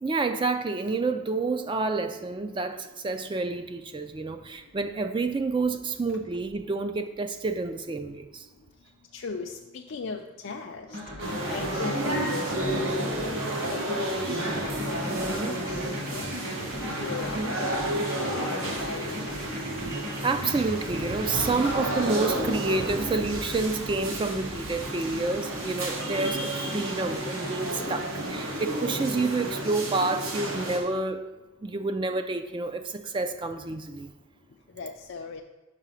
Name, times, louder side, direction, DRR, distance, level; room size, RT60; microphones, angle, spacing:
voice 1, 0.0-8.5 15.1-15.6 17.2-17.5 20.2-31.2 31.6-34.1, right 3 dB, 25° right, 8 dB, 0.3 m, -29 dB
voice 2, 9.1-14.0 14.6-15.8 16.1-16.3 17.0-17.9 18.1-19.4 34.8-35.4, left 4 dB, 55° left, 1 dB, 0.4 m, -38 dB
sound 1, 10.9-23.2, equal, 55° right, 1.8 m, -38 dB
sound 2, 11.2-30.8, right 1 dB, 85° right, 1.4 m, -31 dB
5.7 x 4.9 x 5.6 m, 1.1 s
head